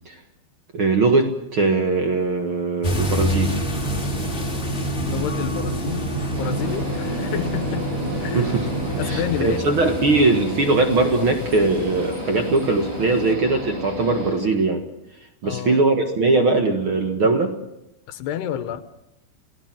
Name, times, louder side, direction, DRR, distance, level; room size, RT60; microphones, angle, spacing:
voice 1, 0.7-3.6 8.3-8.7 9.0-14.8 15.4-17.5, right 3 dB, 60° right, 5 dB, 1.3 m, -20 dB
sound 1, 2.8-13.3, left 1 dB, 20° left, 1.9 m, -32 dB
sound 2, 2.9-9.2, right 2 dB, 45° right, 4.0 m, -27 dB
voice 2, 5.1-7.9 8.2-8.6 9.0-9.7 15.4-15.8 16.9-17.0 18.1-18.8, left 10 dB, 75° left, 11 dB, 2.9 m, -29 dB
sound 3, 6.3-14.3, left 1 dB, 85° right, 10.5 m, -32 dB
29.5 x 17.5 x 7.5 m, 0.90 s
omnidirectional pair, 5.0 m